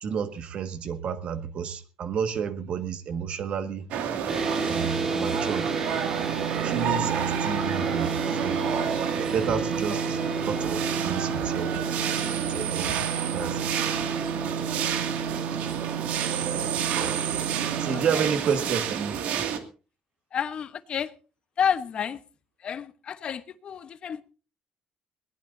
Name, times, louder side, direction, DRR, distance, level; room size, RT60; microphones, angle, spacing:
voice 1, 0.0-3.9 4.7-5.7 6.6-8.6 9.1-10.2 10.5-11.7 12.4-13.8 17.0-17.4 17.8-19.2, right 7 dB, 55° right, 1.8 m, -31 dB
sound 1, 3.9-19.6, right 8 dB, 90° right, 2.3 m, -30 dB
sound 2, 4.3-18.0, right 4 dB, 20° right, 2.0 m, -31 dB
voice 2, 17.9-18.3 20.3-21.1 21.6-22.2 22.6-24.2, left 8 dB, 45° left, 1.0 m, -30 dB
21.0 x 19.0 x 2.7 m
cardioid pair, 140°, 2 cm